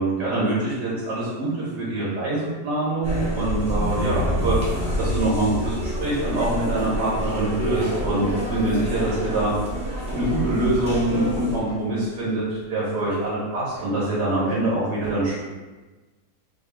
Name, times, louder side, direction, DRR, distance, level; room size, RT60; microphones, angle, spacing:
voice 1, 0.0-15.4, right 2 dB, 75° right, -8 dB, 2.1 m, -25 dB
sound 1, 3.0-11.6, equal, 5° right, 0.6 m, -27 dB
sound 2, 9.6-10.6 10.8-14.7, left 1 dB, 80° left, 1.6 m, -44 dB
5.0 x 2.0 x 3.6 m, 1.2 s
omnidirectional pair, 1.8 m